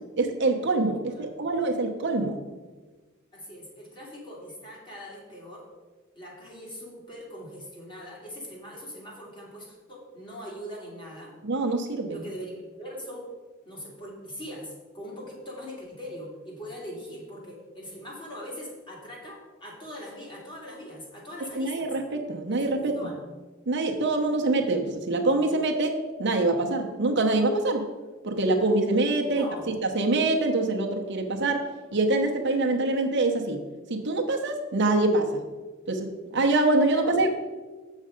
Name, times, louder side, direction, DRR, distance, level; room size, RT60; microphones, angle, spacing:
voice 1, 0.2-2.4 11.4-12.2 21.6-23.1 23.7-27.9 28.2-31.7 31.9-33.6 33.9-35.4 35.9-37.3, right 2 dB, 60° right, 3 dB, 0.9 m, -25 dB
voice 2, 3.3-5.7 6.1-11.3 12.1-13.3 13.7-21.9 22.5-23.3 29.3-29.6 37.0-37.3, equal, 25° left, -3 dB, 2.3 m, -41 dB
7.3 x 6.5 x 5.1 m, 1.3 s
head